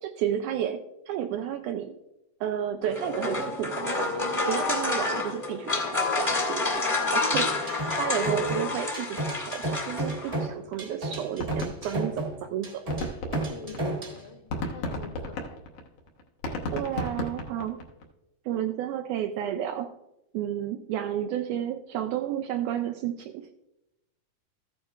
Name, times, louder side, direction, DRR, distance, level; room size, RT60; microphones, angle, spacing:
voice 1, 0.0-2.0 2.4-6.9 7.1-12.8 16.7-17.8 18.5-19.9 20.3-23.5, right 10 dB, 85° right, 7 dB, 1.8 m, -32 dB
sound 1, 2.8-10.4, left 3 dB, 10° left, 0.9 m, -29 dB
sound 2, 7.3-14.2, right 2 dB, 30° right, 1.0 m, -33 dB
sound 3, 10.4-10.5 10.7-10.9 11.1-12.5 12.8-18.0, left 1 dB, 60° left, 1.9 m, -34 dB
voice 2, 13.5-15.6 16.8-17.2, left 4 dB, 85° left, 1 dB, 3.0 m, -46 dB
14.5 x 9.1 x 2.4 m, 0.94 s
omnidirectional pair, 3.9 m